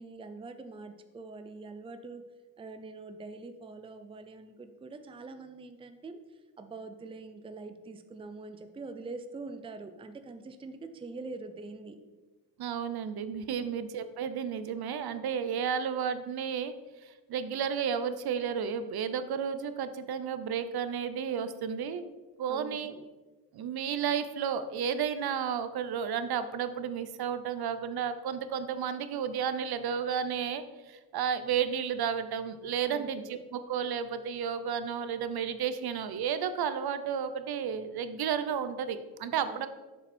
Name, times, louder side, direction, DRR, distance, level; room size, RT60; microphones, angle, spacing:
voice 1, 0.0-2.2 2.6-6.2 6.6-12.0 13.6-13.8 22.5-23.0 32.8-33.4 39.5-39.7, right 3 dB, 15° right, 8 dB, 0.5 m, -44 dB
voice 2, 12.6-16.7 17.0-22.1 22.4-22.9 23.5-39.7, right 7 dB, 70° right, 12 dB, 0.8 m, -32 dB
11.5 x 7.1 x 4.4 m, 1.2 s
wide cardioid pair, 170°, 39 cm